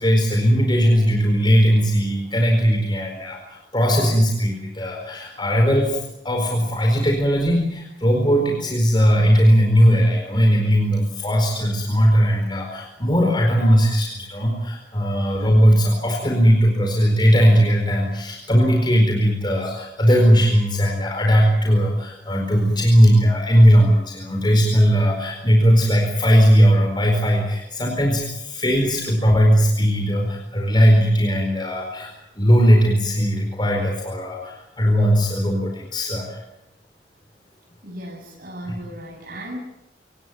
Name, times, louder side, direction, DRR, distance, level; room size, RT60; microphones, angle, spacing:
voice 1, 0.0-36.4 38.7-38.8, equal, 25° left, 1 dB, 4.5 m, -18 dB
voice 2, 37.8-39.6, right 1 dB, 50° right, -4 dB, 7.3 m, -35 dB
27.0 x 18.0 x 8.8 m, 0.88 s
head